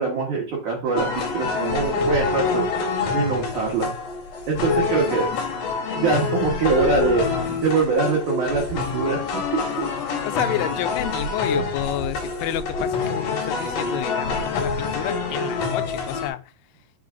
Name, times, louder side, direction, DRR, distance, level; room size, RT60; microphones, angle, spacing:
voice 1, 0.0-2.6 3.1-3.9 4.5-5.3 5.9-9.9, right 4 dB, 80° right, 1.7 m, -23 dB
sound 1, 1.0-16.3, left 4 dB, 60° left, 2.6 m, -26 dB
voice 2, 10.2-16.4, left 14 dB, 90° left, 3.0 m, -30 dB
6.7 x 6.0 x 2.5 m
omnidirectional pair, 5.5 m